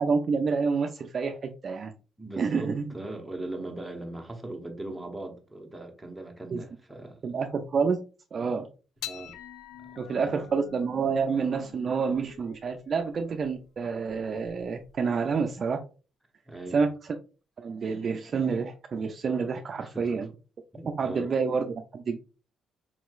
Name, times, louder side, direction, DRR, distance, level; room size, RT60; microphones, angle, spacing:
voice 1, 0.0-1.9 2.4-2.9 6.5-6.6 7.2-8.0 8.3-8.7 10.0-15.8 16.7-16.9 17.6-20.3 20.9-22.2, right 5 dB, 50° right, 0.4 m, -28 dB
voice 2, 2.2-7.2 9.0-9.3 9.8-10.4 16.5-16.8 19.8-20.2 20.7-21.3, right 2 dB, 5° right, 0.9 m, -39 dB
sound 1, 9.0-15.6, left 11 dB, 90° left, 0.3 m, -47 dB
4.4 x 3.0 x 2.3 m
cardioid pair, 90°, 0 cm